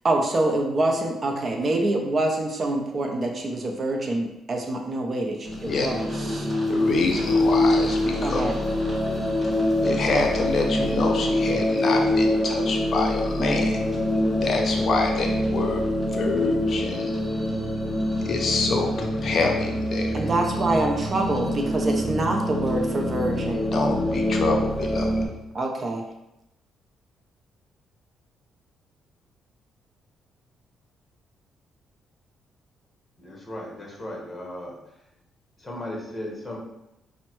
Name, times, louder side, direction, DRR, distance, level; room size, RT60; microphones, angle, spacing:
voice 1, 0.0-6.5 8.2-8.5 20.1-23.6 25.5-26.0, right 2 dB, 40° right, 2 dB, 0.5 m, -26 dB
sound 1, 5.4-25.3, left 1 dB, 15° right, 1.0 m, -25 dB
voice 2, 6.7-8.4 9.8-13.9 14.4-15.8 16.1-17.1 18.3-20.2 23.7-25.1, left 3 dB, 55° left, 2 dB, 0.5 m, -26 dB
voice 3, 33.2-34.8 35.6-36.6, left 1 dB, 20° left, -1 dB, 1.1 m, -36 dB
5.4 x 2.1 x 3.0 m, 0.90 s
cardioid pair, 90°, 0 cm